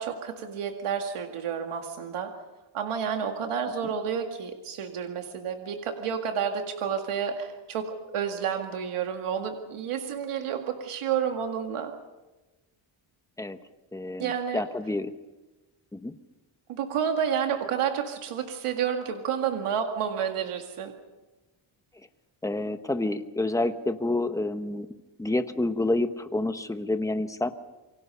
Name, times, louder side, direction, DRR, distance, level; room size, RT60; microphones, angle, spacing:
voice 1, 0.0-2.3 2.7-11.9 14.2-14.6 16.7-20.9, right 7 dB, 85° right, 4 dB, 2.1 m, -30 dB
voice 2, 13.9-15.1 15.9-16.1 22.4-24.9 25.2-27.5, left 2 dB, 5° left, 9 dB, 1.0 m, -28 dB
28.0 x 24.0 x 5.6 m, 1.1 s
wide cardioid pair, 160°, 50 cm